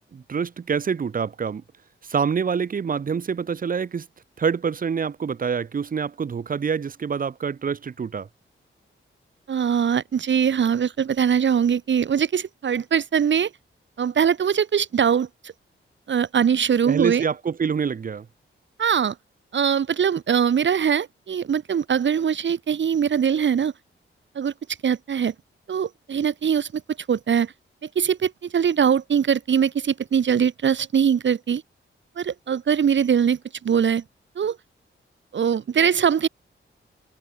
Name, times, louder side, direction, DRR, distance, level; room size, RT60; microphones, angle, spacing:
voice 1, 0.1-1.6 2.1-4.1 4.4-8.3 16.8-18.3, right 6 dB, 40° right, 1.0 m, -26 dB
voice 2, 9.5-13.5 14.0-15.5 16.1-17.2 18.8-19.1 19.5-23.7 24.3-24.5 24.8-25.3 25.7-26.8 27.1-27.5 27.9-31.6 32.2-34.0 34.3-34.6 35.3-36.3, right 7 dB, 60° right, 1.7 m, -22 dB
wide cardioid pair, 160°, 21 cm